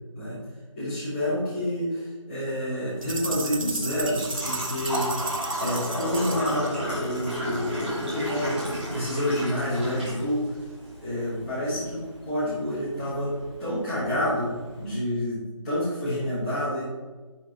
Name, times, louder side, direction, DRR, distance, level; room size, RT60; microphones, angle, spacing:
voice 1, 0.7-5.1 5.6-10.5 11.0-13.3 13.6-16.8, left 1 dB, 5° left, -14 dB, 1.2 m, -28 dB
Engine / Trickle dribble / Fill (with liquid), 2.9-14.9, equal, 20° right, 2.4 m, -34 dB
sound 1, 3.0-6.7, right 3 dB, 80° right, 0.8 m, -34 dB
10.5 x 3.6 x 4.4 m, 1.3 s
figure-of-eight pair, 170°, 17 cm